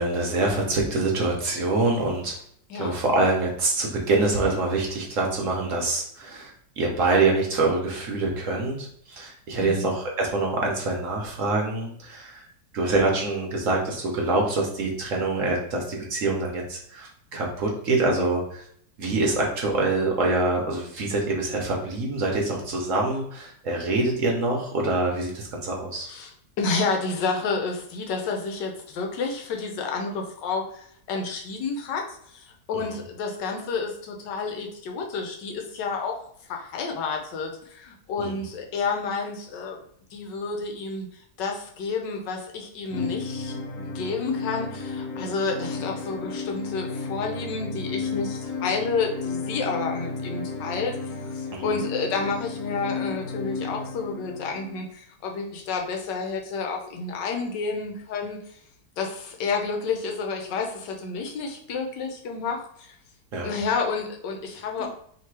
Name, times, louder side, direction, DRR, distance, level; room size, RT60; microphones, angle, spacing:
voice 1, 0.0-2.3 2.8-12.5 12.7-18.7 19.0-26.1 32.7-32.8 38.2-38.3 51.5-51.7 63.3-63.6, right 2 dB, 55° right, 0 dB, 1.1 m, -25 dB
voice 2, 26.6-39.8 40.1-41.1 41.4-50.9 51.2-58.4 59.0-62.9 63.4-64.9, left 4 dB, 85° left, 2 dB, 1.4 m, -30 dB
sound 1, 42.9-54.9, left 4 dB, 70° left, 1.4 m, -33 dB
3.2 x 2.9 x 4.6 m, 0.65 s
omnidirectional pair, 1.9 m